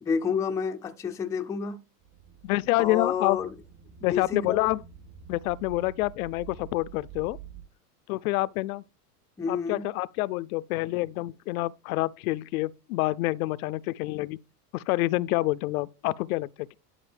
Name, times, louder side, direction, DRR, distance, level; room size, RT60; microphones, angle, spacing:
voice 1, 0.0-1.8 2.8-3.5 4.1-4.6 9.4-9.9, left 6 dB, 5° left, 0.4 m, -29 dB
sound 1, 2.0-7.6, right 8 dB, 50° right, 3.1 m, -48 dB
voice 2, 2.4-3.4 4.0-4.8 5.3-7.4 8.1-8.8 9.5-14.4 14.7-16.7, left 19 dB, 65° left, 0.5 m, -27 dB
11.0 x 5.2 x 3.4 m
hypercardioid pair, 115°, 48 cm